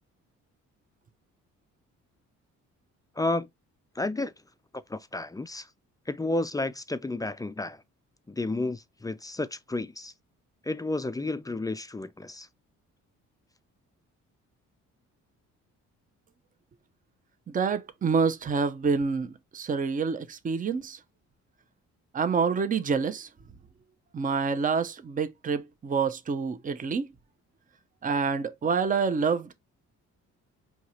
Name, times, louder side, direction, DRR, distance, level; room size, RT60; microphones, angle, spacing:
voice 1, 3.2-3.5 4.0-4.3 4.7-5.7 6.1-7.8 8.3-10.1 10.6-12.5, left 2 dB, 15° left, 0.3 m, -31 dB
voice 2, 17.5-21.0 22.1-23.3 24.1-27.1 28.0-29.5, right 5 dB, 25° right, 0.6 m, -27 dB
4.6 x 2.8 x 2.9 m
cardioid pair, 90°, 30 cm